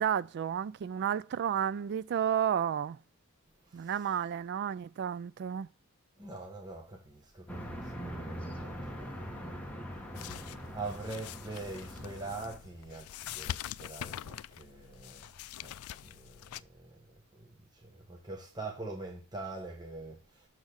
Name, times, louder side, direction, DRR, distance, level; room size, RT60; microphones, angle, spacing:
voice 1, 0.0-3.0 3.7-5.7, right 9 dB, 50° right, 0.3 m, -32 dB
voice 2, 6.2-9.5 10.7-15.3 15.6-15.7 16.0-17.0 17.3-20.5, right 3 dB, 20° right, 1.2 m, -44 dB
sound 1, 7.5-12.6, equal, 5° left, 1.3 m, -42 dB
sound 2, 10.1-16.6, left 11 dB, 80° left, 0.3 m, -44 dB
6.4 x 6.4 x 3.4 m
head